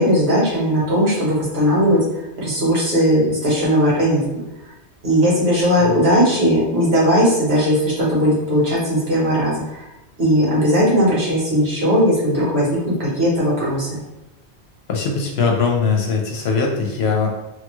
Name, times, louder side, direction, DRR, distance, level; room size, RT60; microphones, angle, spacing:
voice 1, 0.0-2.0 2.4-4.2 5.0-9.5 10.2-14.0, equal, 65° right, -6 dB, 1.5 m, -17 dB
voice 2, 14.9-17.3, left 5 dB, 70° left, 1 dB, 0.8 m, -20 dB
3.1 x 2.3 x 3.0 m, 0.92 s
omnidirectional pair, 1.2 m